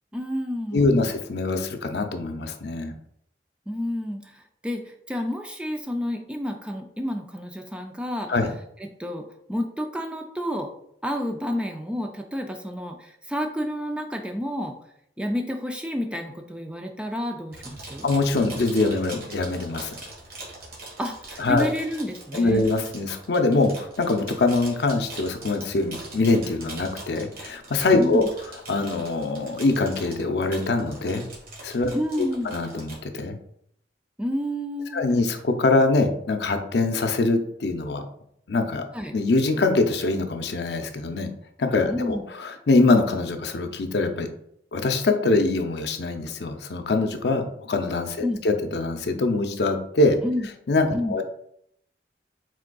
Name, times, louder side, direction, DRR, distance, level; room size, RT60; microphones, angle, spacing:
voice 1, 0.1-1.0 3.7-8.4 8.8-10.7 11.0-14.7 15.2-18.1 21.0-22.7 28.0-28.3 31.9-32.5 34.2-35.0 38.9-39.1 41.9-42.3 48.2-48.4 50.2-50.5 50.9-51.2, equal, 5° right, 4 dB, 0.3 m, -30 dB
voice 2, 0.7-2.9 8.3-8.5 18.0-19.9 21.4-21.7 22.3-28.2 28.7-31.2 31.6-31.9 32.2-33.4 34.9-38.1 38.5-38.8 39.1-41.3 41.6-44.3 44.7-50.2 50.7-51.2, left 3 dB, 70° left, 6 dB, 0.5 m, -23 dB
sound 1, 17.5-33.0, right 2 dB, 55° right, 1.5 m, -42 dB
5.0 x 3.7 x 2.3 m, 0.72 s
head